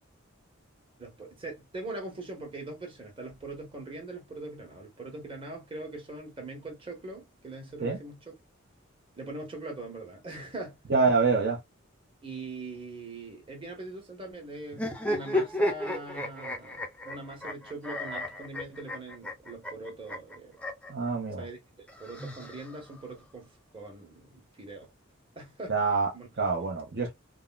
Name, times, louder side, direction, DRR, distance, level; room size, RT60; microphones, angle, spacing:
voice 1, 1.0-8.3 9.1-10.8 12.2-20.6 21.4-24.9 25.4-25.8 26.1-26.3, right 2 dB, 25° right, 1.2 m, -42 dB
voice 2, 10.9-11.6 20.9-21.4 25.7-26.1 26.4-27.1, right 4 dB, 55° right, 0.6 m, -26 dB
sound 1, 14.7-20.9 21.9-23.0, left 1 dB, 5° left, 0.5 m, -33 dB
3.5 x 2.0 x 2.2 m
head